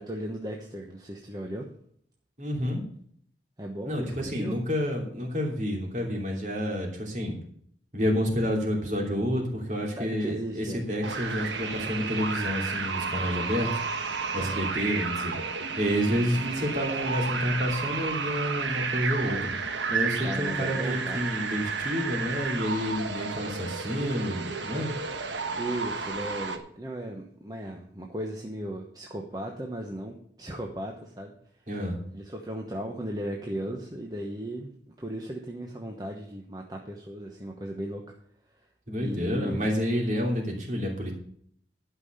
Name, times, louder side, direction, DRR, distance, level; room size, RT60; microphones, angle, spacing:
voice 1, 0.0-1.7 3.6-4.6 10.0-10.8 14.4-14.7 20.2-21.3 25.6-31.3 32.1-38.0 39.0-39.6, right 1 dB, 20° right, 1 dB, 1.0 m, -36 dB
voice 2, 2.4-2.8 3.8-7.4 7.9-13.7 14.0-15.4 15.8-19.5 19.9-24.9 31.7-32.0 38.9-41.1, equal, 40° right, 0 dB, 3.0 m, -29 dB
sound 1, 11.0-26.6, right 5 dB, 85° right, 1.3 m, -32 dB
12.0 x 5.7 x 6.8 m, 0.62 s
head